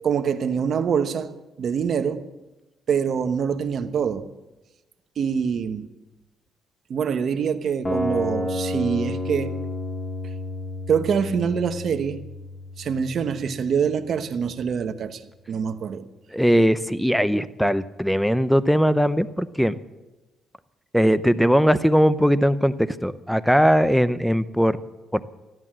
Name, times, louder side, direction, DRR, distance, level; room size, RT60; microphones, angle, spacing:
voice 1, 0.0-1.3 1.6-2.2 2.9-4.2 5.2-5.9 6.9-9.6 10.9-12.2 12.8-15.2 15.5-16.1, right 7 dB, 60° right, 1.0 m, -25 dB
sound 1, 7.8-13.9, left 1 dB, 20° left, 2.3 m, -31 dB
voice 2, 16.3-19.8 20.9-24.8 25.1-25.2, equal, ahead, 0.7 m, -20 dB
14.5 x 11.0 x 7.5 m
cardioid pair, 90°, 0 cm